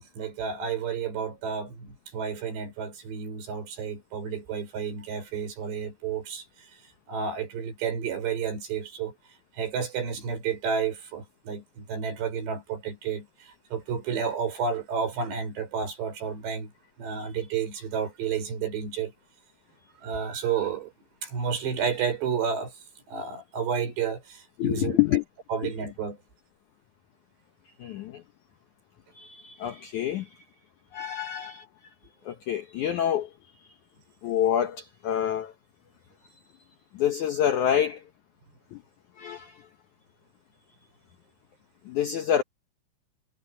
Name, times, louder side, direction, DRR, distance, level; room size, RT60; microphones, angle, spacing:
voice 1, 0.0-6.8 7.1-9.1 9.5-16.7 17.0-19.1 19.9-20.9 21.2-25.0 25.5-26.2, right 6 dB, 85° right, 7.7 m, -31 dB
voice 2, 24.6-25.2 25.6-25.7 27.8-28.2 29.1-30.4 30.9-31.7 32.3-33.3 33.6-33.7 34.2-35.5 36.9-38.0 38.7-38.8 39.2-39.7 41.9-42.4, left 10 dB, 80° left, 1.7 m, -27 dB
omnidirectional pair, 4.8 m